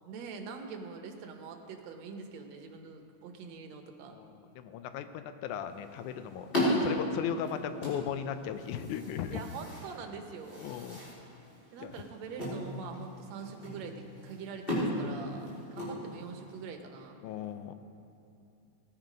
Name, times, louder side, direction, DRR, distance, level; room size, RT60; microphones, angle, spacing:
voice 1, 0.1-4.2 9.3-10.7 11.7-17.2, right 5 dB, 70° right, 5 dB, 2.1 m, -44 dB
voice 2, 4.1-9.4 10.6-11.0 11.8-11.9 15.2-15.5 17.2-17.7, left 8 dB, 85° left, 10 dB, 2.1 m, -37 dB
sound 1, 5.5-16.6, left 1 dB, 15° left, 3.6 m, -36 dB
17.0 x 9.6 x 5.1 m, 2.7 s
omnidirectional pair, 3.4 m